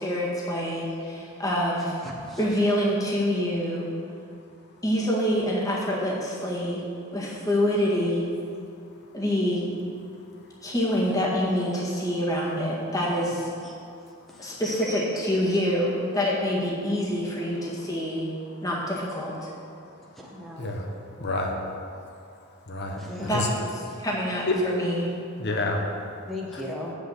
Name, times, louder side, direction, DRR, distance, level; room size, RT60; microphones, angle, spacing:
voice 1, 0.0-1.9 2.4-3.9 4.8-6.8 7.1-8.3 9.1-9.7 10.6-13.5 14.4-18.3 18.6-19.5 23.2-23.5 24.0-25.1, equal, 15° left, -4 dB, 1.8 m, -26 dB
voice 2, 2.0-2.4 13.6-13.7 14.3-14.7 20.2-20.7 23.0-23.4 26.3-26.9, left 1 dB, ahead, -3 dB, 1.1 m, -37 dB
voice 3, 20.6-20.9 21.2-21.5 22.7-23.5 24.5-24.6 25.4-25.8 26.5-26.6, left 2 dB, 55° left, 1 dB, 1.3 m, -28 dB
7.6 x 7.0 x 8.0 m, 2.5 s
head